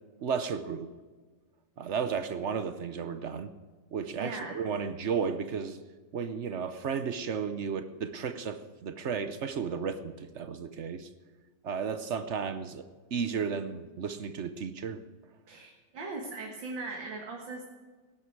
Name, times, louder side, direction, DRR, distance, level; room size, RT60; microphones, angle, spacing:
voice 1, 0.2-0.9 1.8-3.5 3.9-5.8 6.1-11.1 11.6-12.8 13.1-15.0, right 6 dB, 55° right, 10 dB, 0.8 m, -33 dB
voice 2, 4.1-4.5 15.5-17.6, right 3 dB, 75° right, -1 dB, 2.5 m, -39 dB
19.0 x 11.0 x 4.8 m, 1.4 s
omnidirectional pair, 2.1 m